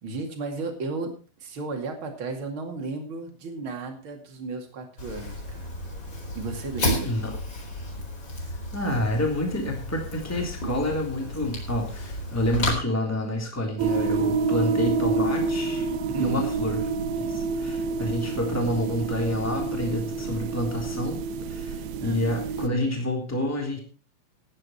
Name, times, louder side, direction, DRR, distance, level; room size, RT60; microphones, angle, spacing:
voice 1, 0.0-1.1 1.4-5.8 6.3-7.2 16.1-16.5 22.0-22.2, right 3 dB, 45° right, 4 dB, 1.7 m, -34 dB
Fire, 5.0-12.7, left 1 dB, 25° left, 4.2 m, -32 dB
voice 2, 8.7-15.9 16.2-16.8 17.2-21.2 21.5-23.8, left 1 dB, 5° left, 1 dB, 1.9 m, -28 dB
sound 1, 13.8-22.7, right 4 dB, 80° right, 2.9 m, -28 dB
16.0 x 9.8 x 4.4 m, 0.35 s
omnidirectional pair, 6.0 m